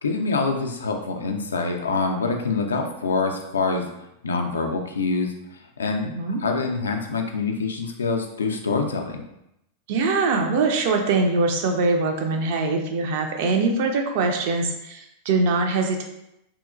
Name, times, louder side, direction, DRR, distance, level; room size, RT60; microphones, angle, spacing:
voice 1, 0.0-3.8 4.2-5.3 5.8-6.1 6.4-9.2, left 4 dB, 70° left, 4 dB, 0.3 m, -25 dB
voice 2, 6.0-6.4 9.9-16.0, right 3 dB, 50° right, 4 dB, 0.4 m, -23 dB
2.8 x 2.3 x 2.4 m, 0.83 s
figure-of-eight pair, 90°, 0 cm